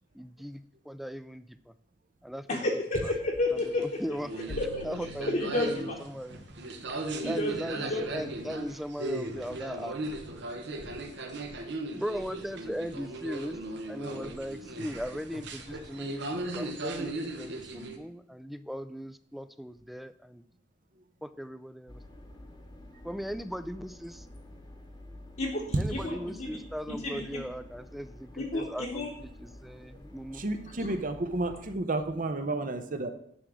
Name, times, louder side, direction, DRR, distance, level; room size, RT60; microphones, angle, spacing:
voice 1, 0.1-1.6 2.2-2.7 3.0-3.1 3.5-4.3 4.8-6.4 7.2-10.0 11.9-13.6 13.9-20.4 21.2-22.0 23.0-24.3 25.8-29.0 29.4-30.4, equal, ahead, 12 dB, 0.3 m, -38 dB
voice 2, 2.5-4.0 4.6-4.9 5.2-6.0 7.2-8.0 25.4-27.4 28.4-29.1 30.8-31.0, left 2 dB, 50° left, -3 dB, 1.2 m, -32 dB
sound 1, 3.6-18.0, right 2 dB, 65° right, 1.0 m, -37 dB
sound 2, 4.5-6.3, left 3 dB, 85° left, 0.6 m, -46 dB
sound 3, 21.9-31.8, left 1 dB, 25° left, 1.1 m, -49 dB
voice 3, 30.3-33.1, right 2 dB, 45° right, 8 dB, 0.8 m, -31 dB
9.9 x 3.7 x 6.2 m, 0.69 s
head